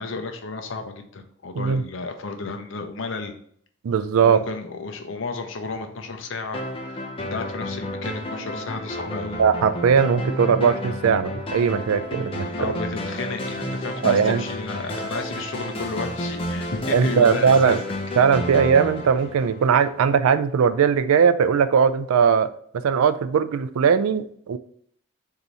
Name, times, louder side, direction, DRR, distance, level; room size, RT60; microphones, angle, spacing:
voice 1, 0.0-3.4 4.2-9.4 11.9-12.0 12.6-17.8, left 3 dB, 65° left, 5 dB, 0.6 m, -32 dB
voice 2, 3.8-4.4 9.4-12.5 14.0-14.4 16.9-17.8 18.2-24.6, right 6 dB, 85° right, 12 dB, 0.4 m, -19 dB
sound 1, 6.5-20.1, left 1 dB, 25° left, 0.6 m, -31 dB
4.0 x 2.8 x 4.7 m, 0.63 s
head